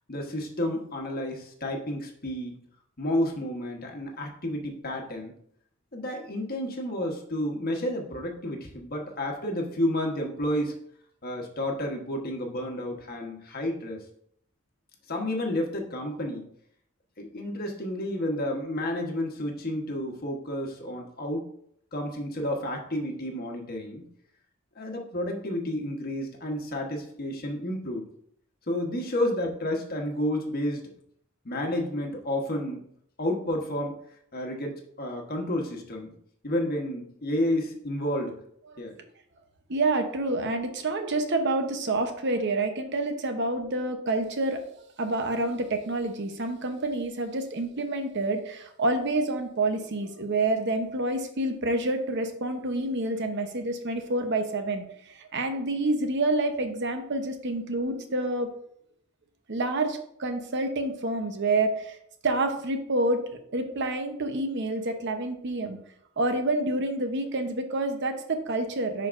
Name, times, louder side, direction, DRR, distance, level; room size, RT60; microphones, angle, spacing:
voice 1, 0.1-2.6 3.0-5.3 5.9-10.7 11.2-14.0 15.1-16.5 17.2-21.5 21.9-24.0 24.7-28.1 28.7-30.9 31.4-32.8 33.2-34.0 34.3-36.1 36.4-38.4 38.8-38.9, left 1 dB, 45° left, 2 dB, 1.2 m, -31 dB
voice 2, 39.7-44.6 45.0-58.5 59.5-63.2 63.5-65.8 66.2-69.1, right 2 dB, 55° right, 6 dB, 0.9 m, -28 dB
10.5 x 4.6 x 2.6 m, 0.68 s
head